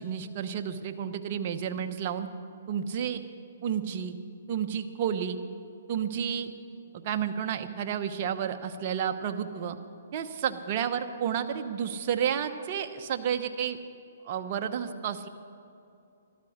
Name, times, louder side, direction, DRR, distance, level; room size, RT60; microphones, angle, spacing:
voice 1, 0.0-2.3 2.7-3.2 3.6-4.1 4.5-5.4 5.9-6.5 7.0-9.8 10.1-13.8 14.2-15.3, right 8 dB, 40° right, 6 dB, 0.9 m, -31 dB
13.5 x 13.0 x 6.5 m, 2.6 s
hypercardioid pair, 145°, 0 cm